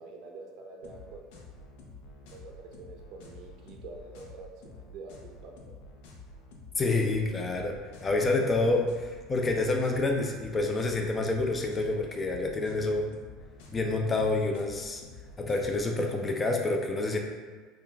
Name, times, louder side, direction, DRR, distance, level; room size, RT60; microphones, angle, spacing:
voice 1, 0.0-1.4 2.3-5.5, right 3 dB, 60° right, 1 dB, 0.5 m, -46 dB
sound 1, 0.8-15.8, left 2 dB, 75° left, 0.6 m, -49 dB
voice 2, 6.8-7.7 8.0-13.1 13.7-15.0 15.4-17.2, left 2 dB, 20° left, 2 dB, 0.4 m, -28 dB
5.5 x 2.3 x 2.3 m, 1.4 s
supercardioid pair, 125°, 0 cm